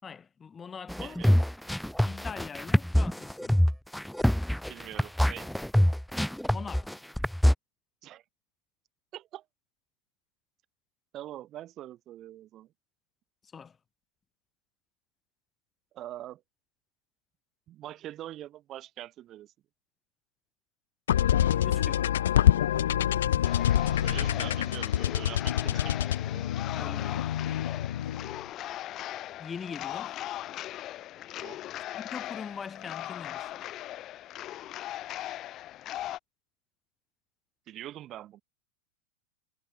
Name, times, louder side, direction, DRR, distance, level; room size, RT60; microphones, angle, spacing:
voice 1, 0.0-1.2 2.0-3.7 6.5-7.0 13.5-13.8 21.3-22.1 26.7-27.7 29.4-30.2 31.9-33.7, left 6 dB, 20° left, 5.2 m, -42 dB
sound 1, 0.9-7.5, equal, ahead, 0.5 m, -25 dB
voice 2, 1.0-1.4 4.7-5.5 8.0-8.2 9.1-9.4 11.1-12.7 15.9-16.4 17.7-19.5 24.0-26.4 31.3-31.6 37.7-38.4, right 13 dB, 40° right, 3.6 m, -43 dB
sound 2, 21.1-28.4, left 11 dB, 75° left, 0.4 m, -26 dB
sound 3, 23.4-36.2, left 13 dB, 40° left, 3.5 m, -39 dB
hypercardioid pair, 105°, 0 cm